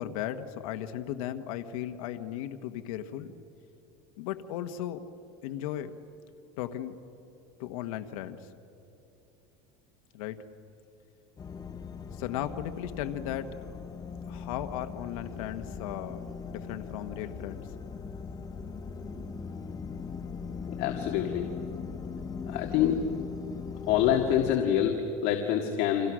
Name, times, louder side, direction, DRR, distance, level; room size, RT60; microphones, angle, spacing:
voice 1, 0.0-3.3 4.2-5.0 5.4-5.9 6.6-7.0 7.6-8.5 10.1-10.4 12.1-13.6 14.3-16.2 16.4-17.7, left 11 dB, 85° left, 8 dB, 1.3 m, -36 dB
sound 1, 11.4-24.6, left 5 dB, 20° left, 1.1 m, -40 dB
voice 2, 20.8-21.5 22.4-23.0 23.9-26.1, left 10 dB, 60° left, 3 dB, 2.0 m, -26 dB
30.0 x 25.5 x 6.3 m, 2.9 s
cardioid pair, 145°, 17 cm